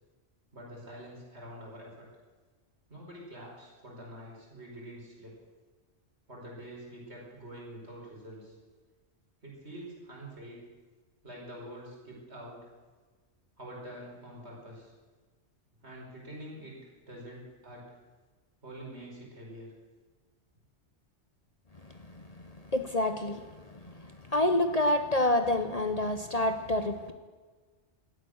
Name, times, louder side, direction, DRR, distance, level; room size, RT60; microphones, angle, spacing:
voice 1, 0.5-2.1 2.9-5.4 6.3-8.5 9.4-10.6 11.2-12.7 13.6-14.9 15.8-16.8 17.1-18.0 18.6-19.7, right 1 dB, 70° right, -3 dB, 5.2 m, -46 dB
voice 2, 22.7-23.5 24.3-27.1, left 1 dB, 35° left, 8 dB, 0.9 m, -27 dB
17.0 x 13.0 x 6.4 m, 1.4 s
omnidirectional pair, 1.2 m